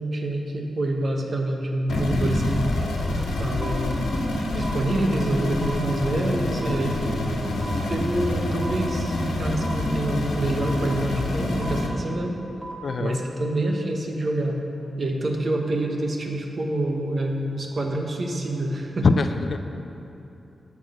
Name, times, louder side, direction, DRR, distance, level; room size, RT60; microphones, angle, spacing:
voice 1, 0.0-2.7 3.4-4.0 4.5-7.0 7.9-12.4 13.0-14.6 15.0-19.1, right 1 dB, 55° right, 2 dB, 1.2 m, -27 dB
sound 1, 1.9-11.9, left 1 dB, 90° left, 1.1 m, -26 dB
sound 2, 3.6-3.7 4.6-4.7 5.6-5.7 6.6-6.7 7.6-7.7 8.6-8.7 9.6-9.7 10.6-10.7 11.6-11.7 12.6-12.7, right 2 dB, 30° right, 2.1 m, -36 dB
voice 2, 12.8-13.2 19.0-19.6, left 4 dB, 65° left, 8 dB, 0.4 m, -22 dB
8.9 x 6.0 x 6.4 m, 2.9 s
cardioid pair, 50°, 0 cm